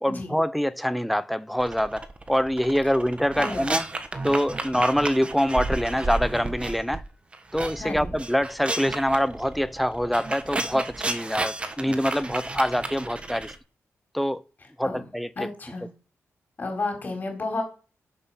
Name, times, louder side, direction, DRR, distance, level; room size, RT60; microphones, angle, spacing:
voice 1, 0.0-3.8 4.2-7.0 7.5-13.5 14.1-14.4 14.8-15.3, equal, ahead, 0.5 m, -25 dB
sound 1, 1.6-7.0 7.3-13.6, right 2 dB, 20° right, 1.1 m, -32 dB
voice 2, 3.4-3.8 7.8-8.1 14.8-15.1 15.4-15.9 16.6-17.6, left 3 dB, 35° left, 4.3 m, -31 dB
11.0 x 7.7 x 6.0 m
wide cardioid pair, 165°, 5 cm